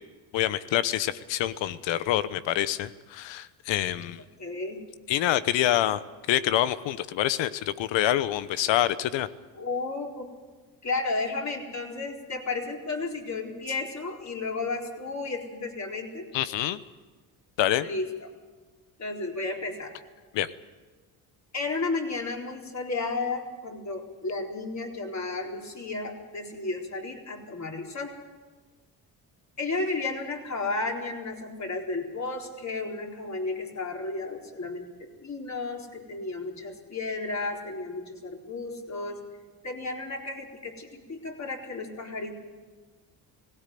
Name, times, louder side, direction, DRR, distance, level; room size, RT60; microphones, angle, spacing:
voice 1, 0.3-4.2 5.1-6.0 6.3-9.3 16.3-16.8 17.6-17.9 20.3-20.5, left 12 dB, 75° left, 15 dB, 1.0 m, -26 dB
voice 2, 4.4-4.8 9.6-10.3 10.8-16.3 17.8-18.3 19.0-19.9 21.5-28.1 29.6-39.2 39.6-42.4, left 3 dB, 35° left, 0 dB, 4.3 m, -33 dB
17.5 x 17.0 x 9.3 m, 1.3 s
supercardioid pair, 70°, 45 cm